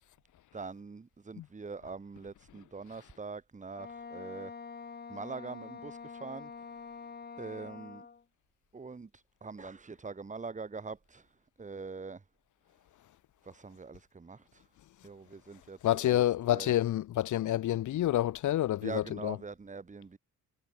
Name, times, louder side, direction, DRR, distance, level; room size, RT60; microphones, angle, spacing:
voice 1, 0.5-4.5 5.1-6.9 7.4-8.1 8.7-11.3 11.6-12.2 13.4-14.6 15.0-16.7 18.8-20.2, right 4 dB, 25° right, 2.2 m, -43 dB
Wind instrument woodwind instrument, 3.7-8.2, left 5 dB, 35° left, 2.7 m, -46 dB
voice 2, 15.8-19.4, left 13 dB, 75° left, 2.1 m, -28 dB
cardioid pair, 90°, 30 cm